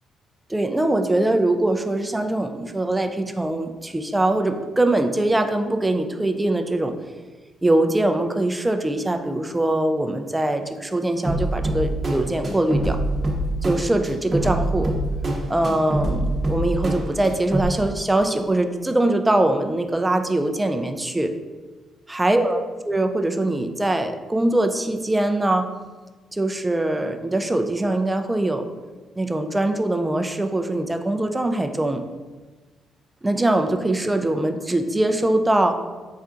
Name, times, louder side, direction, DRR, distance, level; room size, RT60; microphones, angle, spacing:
voice 1, 0.5-6.9 7.6-13.0 13.6-14.9 15.5-21.3 22.1-25.7 26.3-28.6 29.2-32.0 33.2-35.8, right 1 dB, 15° right, 6 dB, 0.3 m, -22 dB
sound 1, 11.2-17.6, right 1 dB, 35° right, 0.8 m, -25 dB
4.2 x 3.5 x 2.5 m, 1.3 s
cardioid pair, 90°, 0 cm